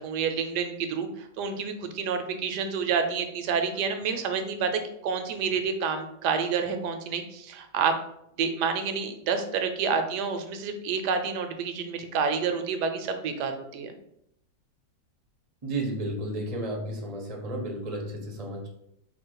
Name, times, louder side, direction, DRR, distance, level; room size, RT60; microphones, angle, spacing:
voice 1, 0.0-8.0 8.4-13.9, right 6 dB, 75° right, 6 dB, 1.2 m, -29 dB
voice 2, 15.6-18.7, right 1 dB, 35° right, 0 dB, 0.6 m, -32 dB
4.0 x 2.7 x 4.6 m, 0.77 s
omnidirectional pair, 1.8 m